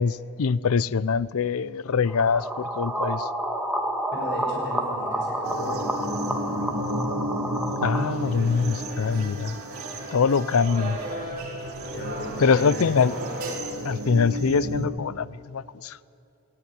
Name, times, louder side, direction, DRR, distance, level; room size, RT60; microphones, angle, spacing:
voice 1, 0.0-3.3 7.8-9.6 10.1-11.0 12.4-13.1 13.8-16.0, left 5 dB, 75° left, 0.5 m, -23 dB
sound 1, 2.1-8.1, right 1 dB, 5° right, 1.5 m, -29 dB
voice 2, 4.1-6.5 11.9-13.2, equal, 55° left, 5.6 m, -36 dB
sound 2, 5.4-14.9, equal, 75° right, 2.1 m, -33 dB
sound 3, 7.9-13.5, right 1 dB, 45° right, 5.3 m, -36 dB
19.0 x 17.0 x 8.7 m
head